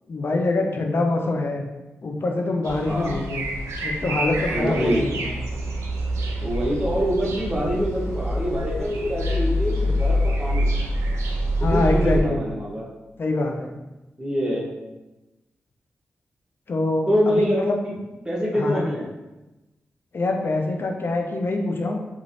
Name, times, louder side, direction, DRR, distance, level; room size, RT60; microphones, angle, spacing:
voice 1, 0.1-1.7 2.0-3.4 3.8-5.3 11.6-12.5 13.2-13.7 16.7-17.8 18.5-18.9 20.1-22.1, left 2 dB, 55° left, 3 dB, 0.5 m, -25 dB
sound 1, 2.6-12.2, equal, 85° right, 0.4 m, -26 dB
voice 2, 2.8-3.2 4.5-5.1 6.4-10.7 11.6-12.9 14.2-14.7 17.1-17.9 18.2-19.1, equal, 15° right, -5 dB, 0.9 m, -25 dB
3.2 x 2.5 x 2.5 m, 1.1 s
supercardioid pair, 45°, 5 cm